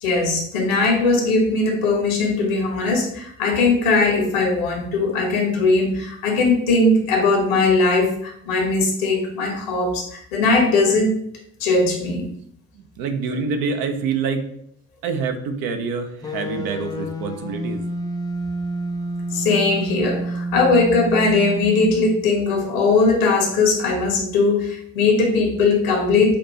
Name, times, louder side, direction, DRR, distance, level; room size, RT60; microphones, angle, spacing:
voice 1, 0.0-11.2 11.6-12.3 19.3-26.3, left 3 dB, 70° left, 1 dB, 1.3 m, -19 dB
voice 2, 13.0-14.5 15.0-17.8, right 5 dB, 55° right, 6 dB, 0.7 m, -26 dB
sound 1, 16.2-22.3, right 1 dB, 10° left, 0.4 m, -28 dB
5.9 x 2.7 x 2.8 m, 0.66 s
figure-of-eight pair, 50°, 44 cm